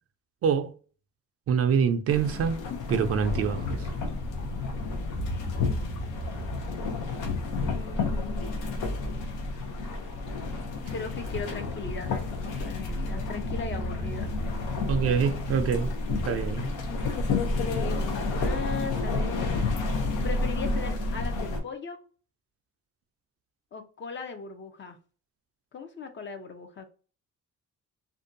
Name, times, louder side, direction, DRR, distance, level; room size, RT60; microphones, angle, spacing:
voice 1, 0.4-0.7 1.5-2.6 2.9-3.9 14.9-15.9 16.2-16.7, right 6 dB, 50° right, 0.4 m, -25 dB
sound 1, 2.1-21.6, left 3 dB, 80° left, 0.6 m, -31 dB
sound 2, 3.2-15.9, left 2 dB, 60° left, 1.3 m, -41 dB
sound 3, 5.3-8.3 13.2-16.5, right 1 dB, 80° right, 0.7 m, -40 dB
voice 2, 7.7-8.8 10.9-14.3 17.6-19.7 20.2-22.0 23.7-25.0 25.7-26.9, left 5 dB, 40° left, 0.5 m, -38 dB
2.5 x 2.2 x 2.5 m
cardioid pair, 90°, 30 cm